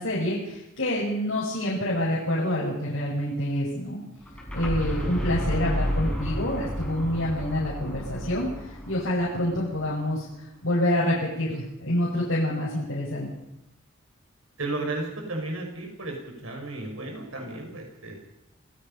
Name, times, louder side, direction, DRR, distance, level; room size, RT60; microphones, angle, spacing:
voice 1, 0.0-4.0 4.5-10.2 10.6-13.3, left 1 dB, 70° left, -6 dB, 6.4 m, -27 dB
sound 1, 4.2-10.0, equal, 5° left, 6.1 m, -31 dB
voice 2, 14.6-18.2, right 2 dB, 90° right, 2 dB, 5.8 m, -34 dB
28.5 x 17.0 x 5.6 m, 0.87 s
head